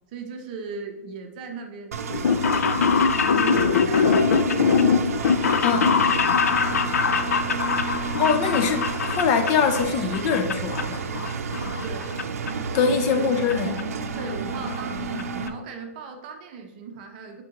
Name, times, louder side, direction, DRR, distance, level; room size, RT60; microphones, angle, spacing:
voice 1, 0.1-2.3 2.7-3.0 3.3-8.0 11.5-12.1 12.8-13.3 14.1-17.4, right 5 dB, 35° right, 4 dB, 0.7 m, -38 dB
Engine, 1.9-15.5, right 4 dB, 80° right, 0.6 m, -31 dB
sound 1, 2.1-9.8 10.1-10.8 11.1-12.2 12.5-12.6 13.5-13.6 13.8-13.9 14.1-14.2 14.5-14.8 15.2-15.3 15.5-15.6, left 5 dB, 85° left, 0.5 m, -22 dB
voice 2, 8.2-11.1 12.7-13.9, left 6 dB, 25° left, 7 dB, 0.5 m, -23 dB
8.8 x 3.7 x 2.9 m, 1.0 s
hypercardioid pair, 165°, 8 cm